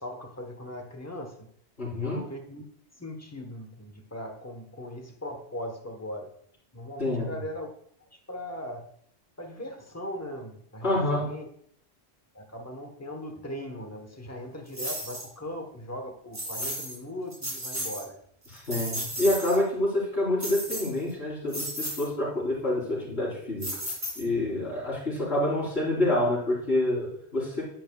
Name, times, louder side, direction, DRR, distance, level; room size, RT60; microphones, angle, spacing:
voice 1, 0.0-1.5 1.9-2.7 3.0-6.3 6.7-7.7 8.1-8.9 9.4-11.5 12.3-18.2 19.2-19.3, left 1 dB, 15° left, 3 dB, 1.1 m, -39 dB
voice 2, 1.8-2.2 7.0-7.3 10.8-11.3 18.5-23.7 24.2-27.6, left 1 dB, 70° left, -7 dB, 4.2 m, -27 dB
sound 1, 14.7-15.3 16.3-17.0 17.3-18.0 18.4-19.6 20.4-21.1 21.5-22.1 23.6-24.5, equal, 30° right, 2.9 m, -34 dB
10.5 x 8.9 x 2.3 m, 0.66 s
omnidirectional pair, 1.1 m